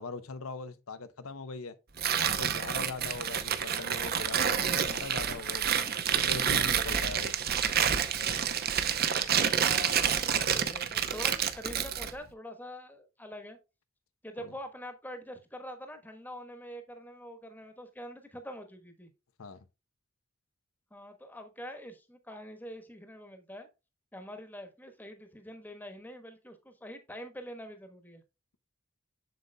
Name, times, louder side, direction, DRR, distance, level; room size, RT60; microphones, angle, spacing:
voice 1, 0.0-1.7 2.2-7.3 9.8-9.9 14.4-14.5 19.4-19.6, left 4 dB, 90° left, 0.7 m, -41 dB
Tearing, 2.0-12.2, right 8 dB, 45° right, 0.7 m, -29 dB
voice 2, 9.6-13.6 14.2-19.1 20.9-23.7 24.1-28.2, equal, 10° left, 1.2 m, -45 dB
7.7 x 6.8 x 2.3 m
head